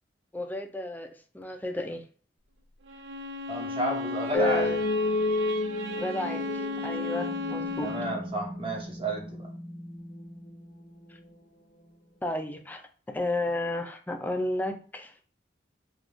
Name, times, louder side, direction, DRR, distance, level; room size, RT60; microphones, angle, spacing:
voice 1, 0.3-1.1 1.3-2.0 4.3-4.8 6.0-7.9 12.2-12.8 13.1-15.1, left 1 dB, 10° left, 5 dB, 0.3 m, -32 dB
Bowed string instrument, 2.9-8.2, left 2 dB, 75° right, 0.4 m, -35 dB
voice 2, 3.5-4.7 7.8-9.5, right 1 dB, 30° right, 1 dB, 0.7 m, -32 dB
sound 1, 4.3-11.3, left 2 dB, 70° left, 0.7 m, -32 dB
2.5 x 2.3 x 3.5 m, 0.41 s
head